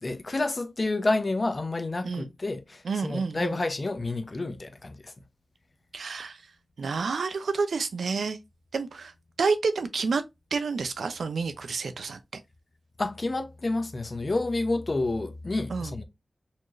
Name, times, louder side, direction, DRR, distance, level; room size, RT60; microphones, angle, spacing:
voice 1, 0.0-5.1 13.0-16.0, left 2 dB, 45° left, 0.7 m, -29 dB
voice 2, 2.8-3.5 5.9-6.4 6.8-8.4 8.7-10.2 10.5-12.2 15.7-15.9, right 4 dB, 85° right, 0.5 m, -29 dB
4.3 x 3.0 x 2.5 m
cardioid pair, 50°, 0 cm